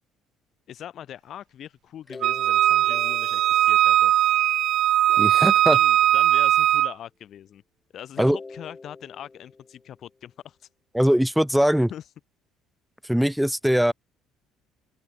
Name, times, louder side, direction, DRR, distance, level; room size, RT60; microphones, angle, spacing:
voice 1, 0.7-4.1 4.5-4.6 5.7-7.6 7.9-10.7 11.9-12.0, left 10 dB, 60° left, 4.1 m, -41 dB
sound 1, 2.1-4.7 5.1-6.5 8.1-10.1, left 3 dB, 25° left, 4.7 m, -44 dB
Wind instrument woodwind instrument, 2.2-6.9, right 12 dB, 65° right, 0.6 m, -19 dB
voice 2, 5.2-5.8 8.2-8.4 10.9-11.9 13.1-13.9, equal, 5° right, 0.7 m, -21 dB
open air
supercardioid pair, 70°, 0 cm